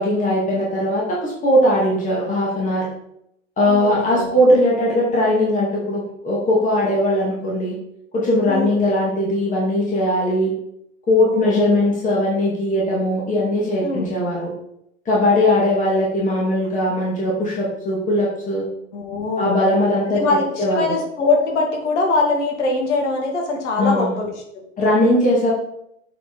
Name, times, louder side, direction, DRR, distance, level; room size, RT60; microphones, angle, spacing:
voice 1, 0.0-2.9 3.6-7.7 8.1-10.5 11.1-14.5 15.1-18.7 19.4-20.9 23.8-24.2 24.8-25.5, left 1 dB, 20° left, -5 dB, 2.1 m, -19 dB
voice 2, 3.7-4.3 8.5-8.8 11.3-11.9 13.8-14.1 18.9-19.6 20.1-24.6, left 3 dB, 60° left, 1 dB, 2.1 m, -23 dB
7.9 x 4.4 x 4.0 m, 0.76 s
figure-of-eight pair, 90°, 39 cm